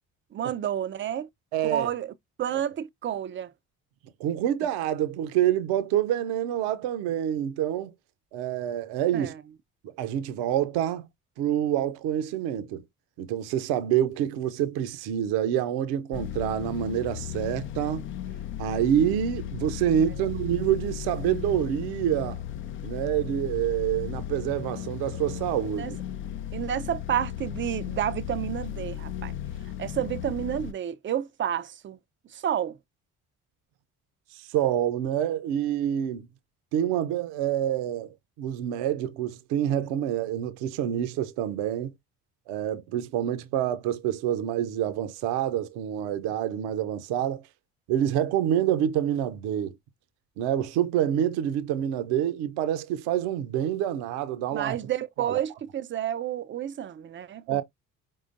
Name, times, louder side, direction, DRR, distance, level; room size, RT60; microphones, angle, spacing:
voice 1, 0.3-1.3 1.6-2.1 2.4-3.5 9.1-9.4 25.8-25.9 26.5-29.3 29.8-32.0 32.3-32.8 54.5-57.6, right 10 dB, 30° right, 0.5 m, -30 dB
voice 2, 1.5-1.9 4.2-7.9 8.3-9.3 10.0-11.1 11.4-12.8 13.2-18.1 18.6-22.4 22.8-26.0 34.4-36.3 36.7-38.1 38.4-41.9 42.5-47.4 47.9-49.7 50.4-54.8 55.2-55.4 57.5-57.6, right 10 dB, 60° right, 0.8 m, -27 dB
sound 1, 16.1-30.7, left 11 dB, 30° left, 0.4 m, -35 dB
5.0 x 3.8 x 2.5 m
figure-of-eight pair, 45°, 43 cm